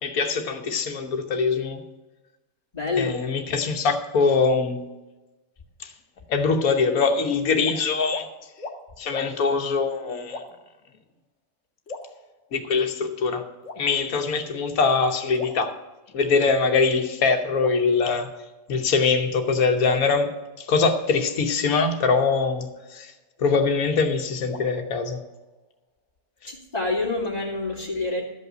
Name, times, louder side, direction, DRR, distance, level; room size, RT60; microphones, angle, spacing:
voice 1, 0.0-1.8 3.0-4.9 5.8-5.9 6.3-8.3 9.0-10.4 12.5-13.5 13.8-15.7 16.1-18.3 18.7-23.1 23.4-25.2, left 4 dB, 80° left, 6 dB, 1.5 m, -23 dB
voice 2, 2.7-3.1 26.4-28.2, left 3 dB, 30° left, -2 dB, 2.5 m, -27 dB
sound 1, 7.6-7.8 8.1-8.3 8.6-8.8 9.1-9.3 10.3-10.7 11.9-12.7 13.6-14.3 15.3-16.3 17.6-18.7 19.8-21.0 22.1-23.5 24.5-25.7, left 3 dB, 55° left, 1.7 m, -41 dB
13.5 x 5.4 x 7.9 m, 1.1 s
omnidirectional pair, 1.5 m